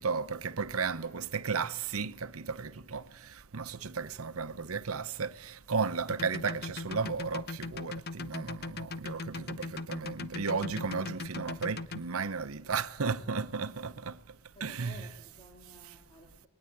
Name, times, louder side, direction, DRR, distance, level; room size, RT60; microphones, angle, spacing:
voice 1, 0.0-14.2 14.6-15.1, right 5 dB, 85° right, 0.9 m, -34 dB
voice 2, 4.2-4.6 9.0-10.1 13.2-13.9 14.5-16.5, left 1 dB, 20° left, 2.7 m, -56 dB
sound 1, 6.1-12.0, left 3 dB, 45° left, 0.8 m, -38 dB
20.0 x 19.5 x 8.6 m
head